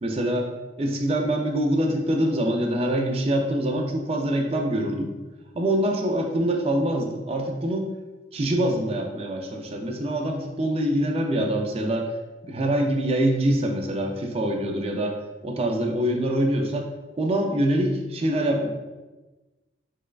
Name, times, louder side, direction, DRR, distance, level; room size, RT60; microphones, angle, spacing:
voice 1, 0.0-0.5 0.8-5.1 5.5-7.9 8.3-12.1 12.4-15.2 15.4-16.9 17.2-18.7, right 1 dB, 30° right, 2 dB, 0.4 m, -24 dB
4.5 x 2.2 x 2.3 m, 1.2 s
head